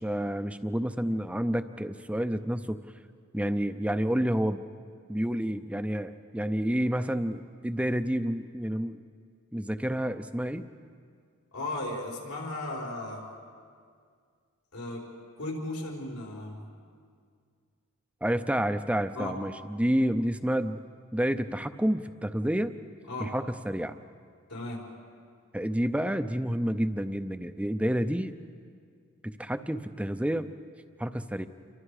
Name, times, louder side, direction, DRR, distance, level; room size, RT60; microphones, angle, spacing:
voice 1, 0.0-2.8 3.3-4.6 5.1-9.0 9.5-10.6 18.2-20.8 21.1-22.8 23.2-24.0 25.5-28.3 29.2-30.5 31.0-31.5, equal, 5° right, 10 dB, 0.5 m, -29 dB
voice 2, 11.5-13.3 14.7-15.1 15.4-16.6 19.1-19.4 23.1-23.4 24.5-24.8, left 2 dB, 80° left, -2 dB, 4.7 m, -35 dB
28.5 x 24.0 x 4.9 m, 2.1 s
head